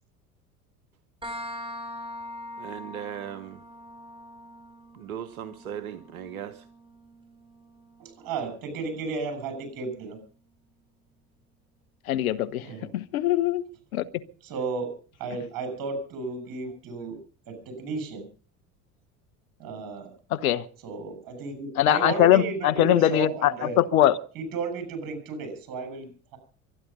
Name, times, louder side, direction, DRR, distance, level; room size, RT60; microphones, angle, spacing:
sound 1, 1.2-8.6, left 1 dB, 10° right, 5.6 m, -43 dB
voice 1, 2.6-3.6 4.9-6.7, right 9 dB, 70° right, 1.1 m, -37 dB
voice 2, 8.0-10.2 12.6-12.9 14.4-14.9 15.2-17.2 17.5-18.3 19.6-20.1 20.8-23.8 24.4-26.4, right 4 dB, 50° right, 7.3 m, -33 dB
voice 3, 12.1-12.7 12.9-13.6 13.9-14.1 20.3-20.6 21.8-24.2, left 13 dB, 70° left, 1.1 m, -22 dB
24.0 x 10.0 x 5.4 m
figure-of-eight pair, 70°, 44 cm